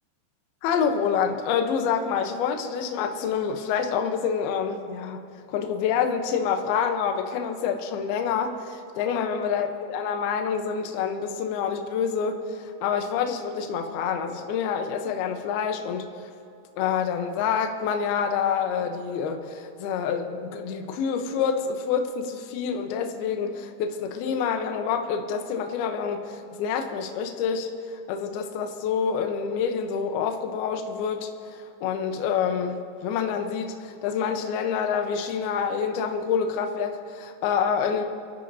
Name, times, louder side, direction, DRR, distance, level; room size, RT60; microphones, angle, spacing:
voice 1, 0.6-16.3 16.8-38.1, left 7 dB, 90° left, 5 dB, 2.2 m, -27 dB
28.0 x 12.5 x 2.7 m, 2.6 s
omnidirectional pair, 5.8 m